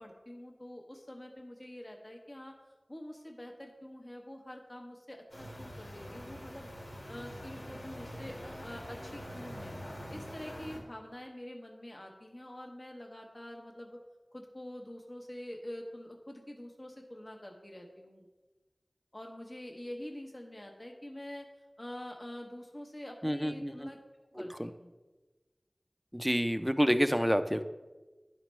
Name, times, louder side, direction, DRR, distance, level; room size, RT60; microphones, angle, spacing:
voice 1, 0.0-2.5 2.9-6.7 7.1-9.8 10.1-14.0 14.3-18.3 19.1-21.5 21.8-24.0 24.3-24.9, left 1 dB, 40° left, 1 dB, 0.9 m, -46 dB
sound 1, 5.3-10.8, equal, 90° left, 1.9 m, -45 dB
voice 2, 23.2-23.9 24.6-24.7 26.1-27.7, equal, ahead, 10 dB, 0.4 m, -28 dB
11.0 x 4.3 x 3.1 m, 1.2 s
wide cardioid pair, 50°, 0 cm